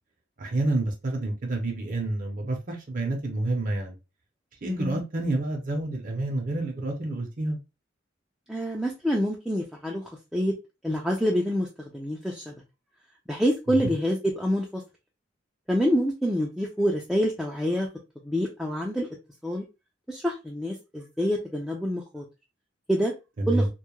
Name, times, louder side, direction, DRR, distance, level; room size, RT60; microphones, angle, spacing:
voice 1, 0.4-4.0 4.6-7.6 13.7-13.8 23.4-23.7, right 2 dB, 45° right, 0.6 m, -28 dB
voice 2, 4.6-5.0 8.5-10.0 10.3-10.5 10.8-11.7 11.9-12.5 13.3-14.8 15.7-17.9 18.2-19.1 19.4-19.6 20.1-22.2 22.9-23.1 23.5-23.7, equal, ahead, 0.3 m, -26 dB
2.2 x 2.1 x 2.9 m
head